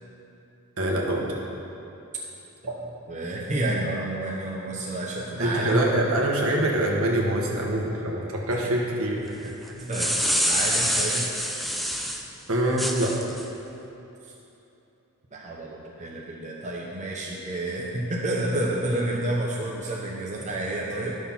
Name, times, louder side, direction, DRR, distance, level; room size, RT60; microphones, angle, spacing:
voice 1, 0.8-1.3 2.7-2.8 5.4-9.3 12.5-13.1, right 1 dB, 70° right, -2 dB, 1.6 m, -24 dB
voice 2, 3.1-5.8 9.4-9.5 9.8-10.1 10.5-11.3 14.2-14.3 15.3-21.2, right 1 dB, 35° right, -4 dB, 1.0 m, -30 dB
Plastic Bag, 9.7-12.3 12.8-13.5, equal, ahead, 0.5 m, -26 dB
11.5 x 6.5 x 5.8 m, 2.9 s
head